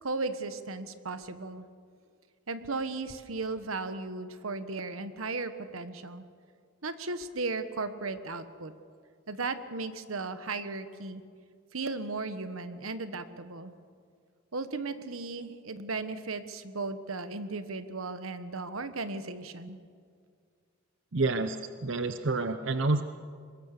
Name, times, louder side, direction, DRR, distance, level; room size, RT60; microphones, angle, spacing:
voice 1, 0.0-1.6 2.5-6.2 6.8-8.7 9.3-11.2 11.7-13.7 14.5-19.8, right 3 dB, 90° right, 11 dB, 1.3 m, -36 dB
voice 2, 21.1-23.0, right 3 dB, 60° right, 9 dB, 0.8 m, -28 dB
24.0 x 21.0 x 6.7 m, 2.1 s
head